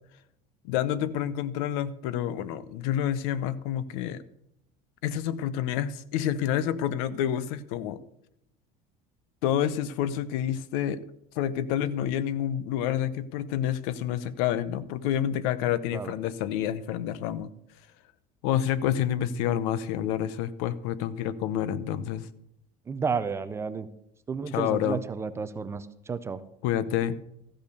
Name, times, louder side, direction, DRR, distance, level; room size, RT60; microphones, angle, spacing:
voice 1, 0.6-4.2 5.0-8.0 9.4-11.0 11.4-17.5 18.4-22.3 24.5-25.0 26.6-27.2, left 10 dB, 75° left, 17 dB, 0.7 m, -28 dB
voice 2, 22.9-23.9 24.3-26.4, right 5 dB, 15° right, 12 dB, 0.4 m, -32 dB
14.0 x 5.3 x 6.7 m, 0.79 s
cardioid pair, 165°, 18 cm